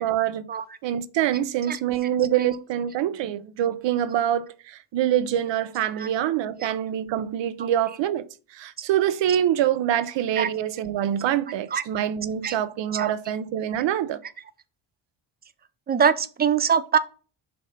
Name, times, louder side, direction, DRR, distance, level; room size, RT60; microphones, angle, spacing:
voice 1, 0.0-0.5 0.8-8.2 8.5-14.2, right 11 dB, 65° right, 0.6 m, -25 dB
voice 2, 15.9-17.0, right 7 dB, 25° right, 0.4 m, -23 dB
6.6 x 2.6 x 5.4 m
cardioid pair, 120°, 46 cm